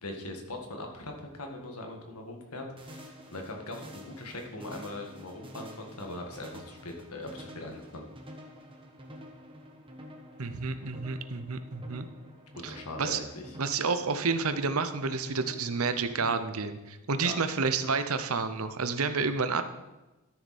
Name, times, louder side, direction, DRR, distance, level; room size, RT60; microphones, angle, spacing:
voice 1, 0.0-8.1 12.6-13.6 17.2-17.4, left 2 dB, 85° left, 2 dB, 1.9 m, -41 dB
sound 1, 2.8-16.4, equal, 25° right, 1.3 m, -49 dB
voice 2, 10.4-12.1 12.6-13.2 13.6-19.6, right 4 dB, 75° right, 10 dB, 0.8 m, -30 dB
12.5 x 7.1 x 4.3 m, 1.1 s
head